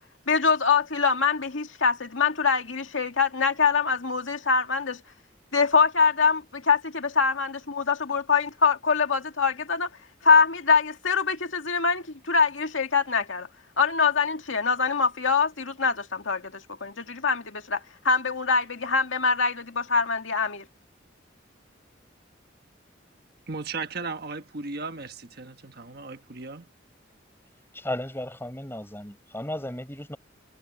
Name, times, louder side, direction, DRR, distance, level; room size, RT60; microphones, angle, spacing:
voice 1, 0.3-5.0 5.5-9.9 10.2-13.5 13.8-20.6, left 5 dB, 90° left, 2.1 m, -24 dB
voice 2, 23.5-26.7, right 4 dB, 55° right, 1.4 m, -36 dB
voice 3, 27.7-30.2, left 1 dB, 10° left, 6.9 m, -34 dB
head